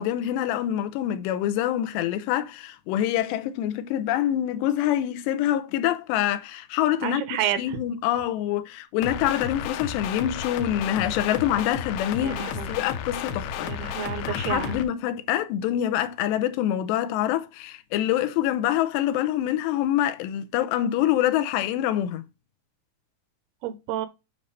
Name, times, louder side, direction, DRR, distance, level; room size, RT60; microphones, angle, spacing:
voice 1, 0.0-7.2 7.6-13.7 14.3-22.2, left 12 dB, 90° left, 2.9 m, -25 dB
voice 2, 7.0-7.8 12.1-12.7 13.6-14.8 23.6-24.1, right 11 dB, 75° right, 2.5 m, -30 dB
sound 1, 9.0-14.8, left 8 dB, 75° left, 2.7 m, -32 dB
9.6 x 5.4 x 3.2 m
omnidirectional pair, 4.9 m